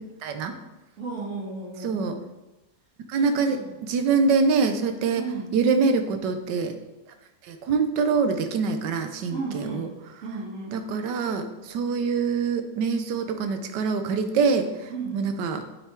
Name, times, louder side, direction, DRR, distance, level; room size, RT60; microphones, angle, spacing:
voice 1, 0.2-0.6 1.8-2.2 3.1-5.2 5.5-6.7 7.5-9.9 10.7-15.6, right 5 dB, 70° right, 7 dB, 1.4 m, -25 dB
voice 2, 1.0-2.0 3.1-3.7 5.1-5.5 9.3-9.9 10.2-10.8 14.9-15.2, right 4 dB, 40° right, -9 dB, 2.2 m, -34 dB
8.8 x 5.9 x 4.5 m, 1.0 s
omnidirectional pair, 2.1 m